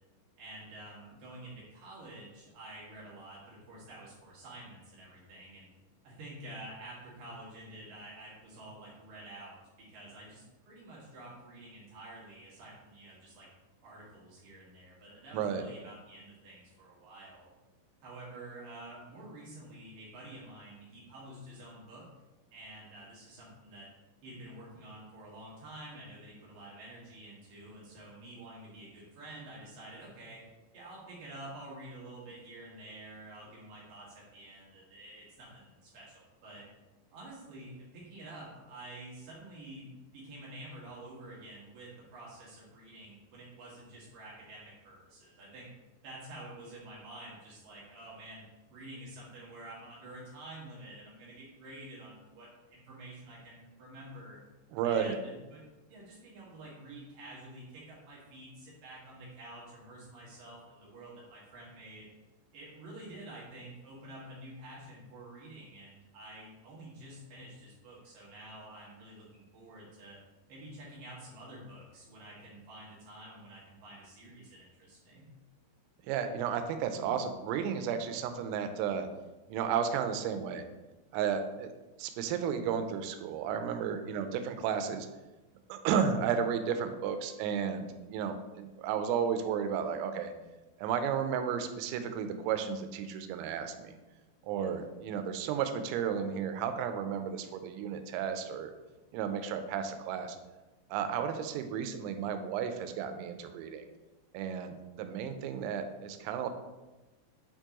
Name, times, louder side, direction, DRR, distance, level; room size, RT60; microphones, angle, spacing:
voice 1, 0.4-5.7 6.0-13.5 13.8-17.5 18.0-22.0 22.5-23.9 24.2-30.4 30.7-36.6 37.1-45.7 46.0-48.4 48.7-54.4 54.8-62.1 62.5-70.2 70.5-75.3 94.5-94.7, right 1 dB, 60° right, -7 dB, 2.6 m, -49 dB
voice 2, 15.3-15.6 54.7-55.2 76.0-79.1 79.5-80.7 81.1-81.7 82.0-85.1 85.7-90.3 90.8-94.0 94.4-98.7 99.1-100.4 100.9-103.9 104.3-106.5, right 7 dB, 90° right, 8 dB, 3.2 m, -33 dB
7.8 x 4.5 x 2.9 m, 1.1 s
omnidirectional pair, 5.9 m